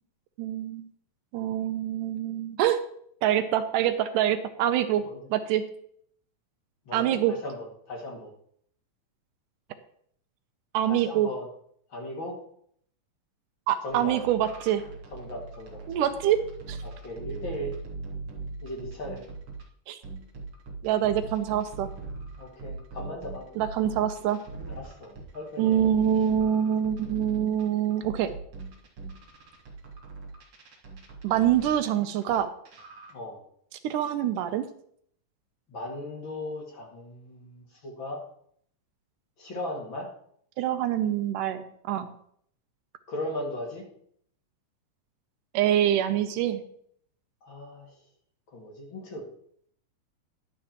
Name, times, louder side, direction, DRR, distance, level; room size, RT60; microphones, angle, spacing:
voice 1, 0.4-0.9 1.3-2.8 3.2-5.0 5.3-5.6 6.9-7.3 10.7-11.3 13.7-14.8 15.9-16.4 16.7-16.8 19.9-20.0 20.8-21.9 23.6-24.4 25.6-28.3 31.2-32.5 33.8-34.6 40.6-42.1 45.5-46.6, right 10 dB, 85° right, 10 dB, 2.2 m, -25 dB
voice 2, 6.9-8.3 10.9-11.5 11.9-12.3 13.8-14.2 15.1-16.0 16.8-17.7 18.6-19.2 22.4-23.6 24.8-25.8 33.1-33.4 35.7-38.2 39.4-40.1 43.1-43.8 47.4-47.9 48.5-49.2, left 1 dB, 40° left, -1 dB, 2.5 m, -37 dB
sound 1, 13.9-19.6 20.0-32.4 32.7-33.1, right 3 dB, 50° right, 2.1 m, -40 dB
11.5 x 11.0 x 3.0 m, 0.65 s
omnidirectional pair, 3.7 m